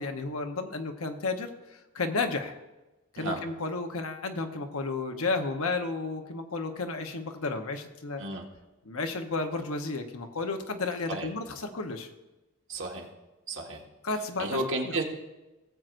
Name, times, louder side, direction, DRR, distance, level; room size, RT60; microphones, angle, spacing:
voice 1, 0.0-2.6 3.1-8.2 8.8-12.1 14.0-14.6, left 3 dB, 80° left, 5 dB, 1.0 m, -32 dB
voice 2, 12.7-13.1 13.5-13.8 14.4-15.0, right 2 dB, 60° right, 0 dB, 1.6 m, -32 dB
18.0 x 7.6 x 2.6 m, 1.1 s
head